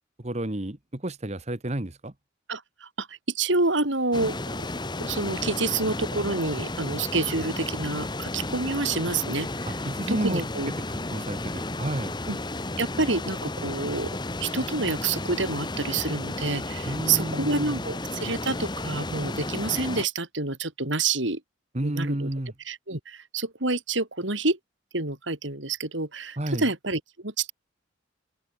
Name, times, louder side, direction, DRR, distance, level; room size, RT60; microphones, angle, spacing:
voice 1, 0.2-2.1 9.8-10.5 11.1-12.1 16.8-17.8 21.7-22.5 26.4-26.7, right 1 dB, 35° right, 1.4 m, -30 dB
voice 2, 2.5-4.4 5.0-9.5 10.1-10.7 12.3-12.4 12.8-14.1 14.4-21.4 21.8-22.3 22.7-24.6 24.9-27.5, right 3 dB, 70° right, 4.5 m, -28 dB
sound 1, 4.1-20.0, left 2 dB, 20° left, 1.3 m, -33 dB
open air
head